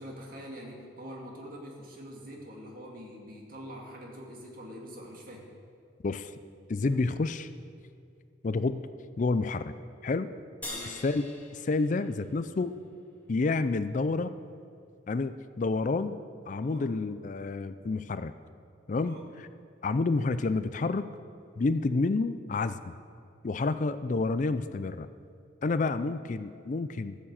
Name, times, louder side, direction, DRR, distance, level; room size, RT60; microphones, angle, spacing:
voice 1, 0.0-5.5 6.8-6.9 10.7-11.0 16.6-16.9 19.0-19.2 23.7-23.8, equal, 50° right, 0 dB, 2.2 m, -44 dB
voice 2, 6.7-7.5 8.4-8.9 9.2-9.7 10.0-10.3 10.8-11.2 11.5-12.7 13.3-14.3 15.1-16.2 16.5-18.3 18.9-19.5 19.8-21.1 21.6-22.9 23.4-25.1 25.6-27.2, left 3 dB, 40° left, 12 dB, 0.4 m, -29 dB
sound 1, 10.6-13.2, left 2 dB, 10° left, 2.0 m, -44 dB
14.5 x 7.2 x 7.4 m, 2.4 s
head